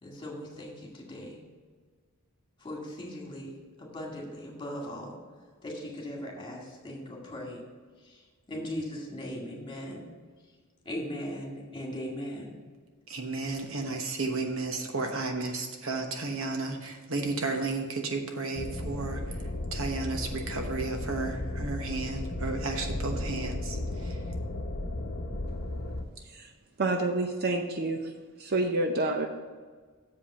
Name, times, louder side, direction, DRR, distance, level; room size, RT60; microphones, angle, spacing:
voice 1, 0.0-1.4 2.6-5.2 5.6-7.6 8.0-10.1 10.9-12.6, equal, 20° left, -1 dB, 2.0 m, -39 dB
voice 2, 13.1-19.2 19.7-23.8 24.0-24.1, right 3 dB, 65° right, 4 dB, 1.1 m, -33 dB
sound 1, 18.6-26.0, left 1 dB, 60° left, 0.8 m, -34 dB
voice 3, 26.8-28.0 28.4-29.3, right 2 dB, 45° right, 4 dB, 0.7 m, -27 dB
7.1 x 5.3 x 7.1 m, 1.5 s
head